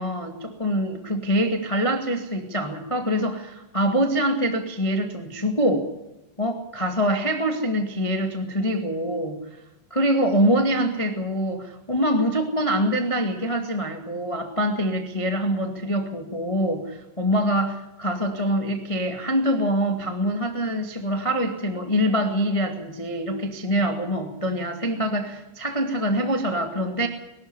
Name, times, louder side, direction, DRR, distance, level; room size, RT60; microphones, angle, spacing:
voice 1, 0.0-5.9 6.4-9.4 9.9-27.1, equal, 25° left, 5 dB, 0.7 m, -24 dB
22.5 x 13.0 x 9.9 m, 0.95 s
omnidirectional pair, 5.0 m